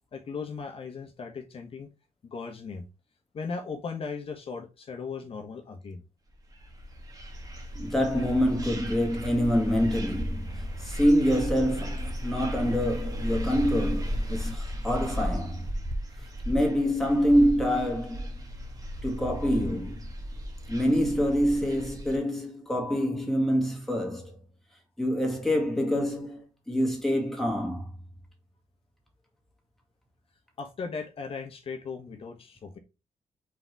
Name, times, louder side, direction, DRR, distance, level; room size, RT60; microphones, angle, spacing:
voice 1, 0.1-1.9 2.3-2.8 3.3-6.0 30.6-32.8, left 5 dB, 50° left, 1.1 m, -37 dB
sound 1, 6.5-22.2, equal, 30° right, 1.5 m, -35 dB
voice 2, 7.8-15.7 16.5-18.3 19.0-20.0 20.7-24.3 25.0-26.4 26.7-27.9, equal, 5° left, 2.1 m, -26 dB
4.8 x 4.2 x 4.6 m
wide cardioid pair, 140°, 12 cm